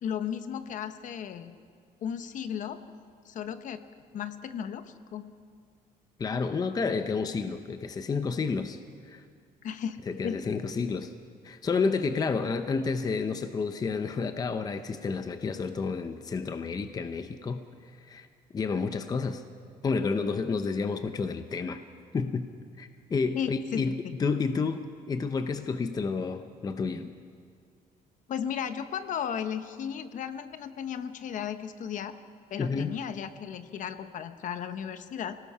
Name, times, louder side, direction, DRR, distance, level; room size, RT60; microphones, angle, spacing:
voice 1, 0.0-1.6 2.0-2.8 3.2-3.8 4.1-5.3 9.6-10.0 10.2-10.4 23.3-24.1 28.3-32.1 32.5-35.4, left 8 dB, 55° left, 10 dB, 0.9 m, -35 dB
voice 2, 6.2-8.8 9.1-9.2 10.1-11.1 11.4-18.3 18.5-19.4 19.8-21.8 22.1-22.5 22.8-27.1 32.6-33.0, left 4 dB, 25° left, 9 dB, 0.7 m, -30 dB
25.0 x 18.5 x 5.6 m, 2.1 s
cardioid pair, 155°, 16 cm